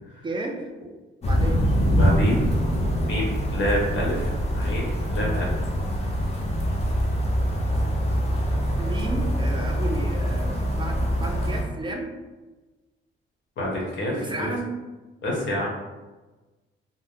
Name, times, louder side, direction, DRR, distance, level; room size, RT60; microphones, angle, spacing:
voice 1, 0.2-0.7 1.2-1.6 8.8-12.1 14.2-14.7, right 2 dB, 25° right, 2 dB, 0.4 m, -32 dB
sound 1, 1.2-11.6, equal, 30° left, 0.6 m, -24 dB
voice 2, 2.0-2.4 3.1-5.5 13.6-14.1 15.2-15.7, left 1 dB, 70° left, -3 dB, 1.1 m, -27 dB
2.7 x 2.0 x 3.4 m, 1.2 s
cardioid pair, 90°, 20 cm